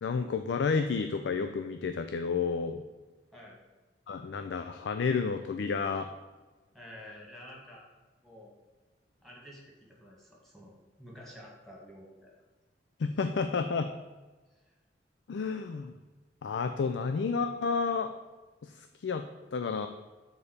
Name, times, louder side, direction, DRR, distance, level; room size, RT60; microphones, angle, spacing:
voice 1, 0.0-2.8 4.1-6.1 13.0-13.9 15.3-15.9 16.4-18.1 18.6-19.2 19.5-19.9, left 5 dB, 85° left, 8 dB, 0.4 m, -31 dB
voice 2, 6.7-7.8 8.2-8.5 9.2-12.3, equal, ahead, -3 dB, 1.8 m, -50 dB
6.9 x 4.2 x 6.5 m, 1.2 s
head